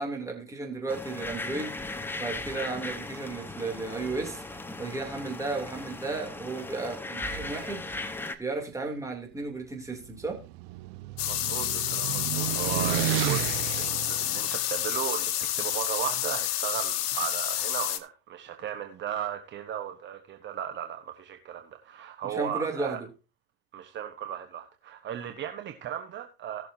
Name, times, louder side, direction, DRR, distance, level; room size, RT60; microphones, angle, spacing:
voice 1, 0.0-4.4 4.8-7.9 8.4-10.4 22.2-23.1, right 3 dB, 10° right, 3.0 m, -34 dB
sound 1, 0.9-8.4, left 2 dB, 5° left, 1.0 m, -37 dB
sound 2, 9.9-15.1, right 17 dB, 60° right, 0.9 m, -32 dB
sound 3, 11.2-18.0, left 13 dB, 80° left, 1.3 m, -29 dB
voice 2, 11.2-13.5 13.7-23.0 23.7-26.7, right 10 dB, 40° right, 1.2 m, -36 dB
19.5 x 6.8 x 2.8 m
supercardioid pair, 115°, 30 cm